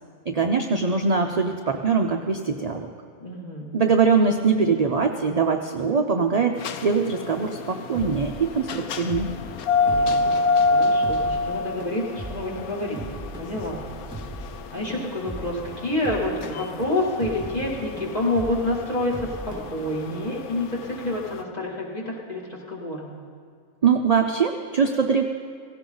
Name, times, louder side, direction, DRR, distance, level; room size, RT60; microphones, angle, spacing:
voice 1, 0.3-2.9 3.7-9.3 23.8-25.2, right 5 dB, 45° right, 4 dB, 0.5 m, -22 dB
voice 2, 3.2-3.7 9.8-10.4 10.7-13.0 13.4-13.9 14.7-23.1, left 1 dB, 30° left, -4 dB, 2.5 m, -28 dB
sound 1, 6.6-21.3, left 3 dB, 85° left, 1.2 m, -26 dB
sound 2, 7.9-20.3, right 2 dB, 10° right, 2.1 m, -39 dB
16.5 x 16.5 x 3.9 m, 2.2 s
omnidirectional pair, 1.5 m